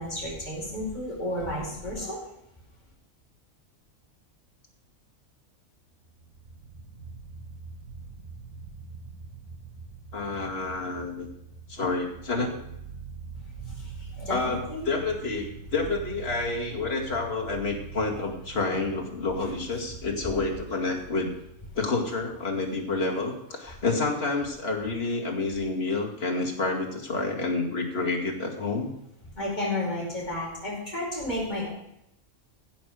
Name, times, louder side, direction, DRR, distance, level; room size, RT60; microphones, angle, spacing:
voice 1, 0.0-2.2 13.7-14.9 18.1-18.2 29.3-31.7, left 1 dB, 35° left, -6 dB, 4.9 m, -32 dB
sound 1, 6.0-23.4, right 4 dB, 80° right, 1.7 m, -44 dB
voice 2, 10.1-11.3 11.7-12.6 14.3-21.3 21.7-28.9, left 3 dB, 50° left, 0 dB, 2.5 m, -29 dB
15.0 x 6.2 x 6.5 m, 0.80 s
omnidirectional pair, 1.4 m